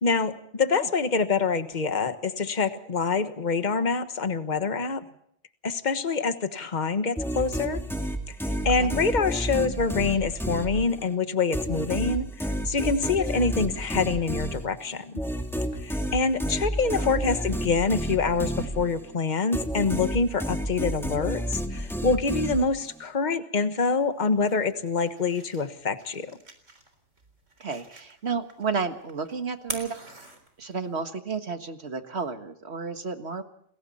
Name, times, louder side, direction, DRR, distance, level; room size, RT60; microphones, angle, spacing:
voice 1, 0.0-5.0 5.6-7.8 8.3-8.4 8.6-15.1 15.8-26.4, left 4 dB, 40° left, 9 dB, 1.5 m, -26 dB
sound 1, 7.2-11.1 11.5-19.2 19.5-23.0, equal, ahead, 2.3 m, -30 dB
sound 2, 24.0-31.0, right 2 dB, 80° right, 4.2 m, -45 dB
voice 2, 27.6-30.0 30.6-33.4, right 5 dB, 60° right, 7 dB, 1.9 m, -32 dB
29.5 x 21.0 x 4.3 m, 0.67 s
omnidirectional pair, 1.2 m